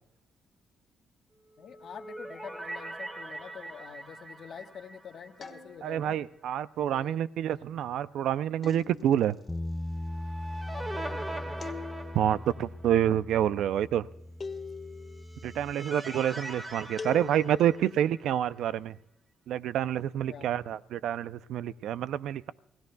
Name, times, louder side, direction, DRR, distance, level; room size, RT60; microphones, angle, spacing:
voice 1, 1.6-6.2 6.9-7.2 10.7-11.8 20.3-20.5, left 7 dB, 60° left, 6 dB, 1.2 m, -46 dB
sound 1, 1.6-5.9 6.2-6.3 9.8-12.9 15.0-18.4, right 1 dB, 20° right, 1.8 m, -42 dB
sound 2, 5.4-6.2 8.6-9.4 11.6-12.4 14.4-15.2 17.0-17.8, left 5 dB, 35° left, 1.5 m, -42 dB
voice 2, 5.8-9.4 12.1-14.1 15.4-19.0 19.5-22.5, right 10 dB, 80° right, 16 dB, 0.4 m, -28 dB
Bass guitar, 9.5-15.7, left 1 dB, 10° left, 0.5 m, -40 dB
27.5 x 17.5 x 2.3 m, 0.78 s
cardioid pair, 90°, 0 cm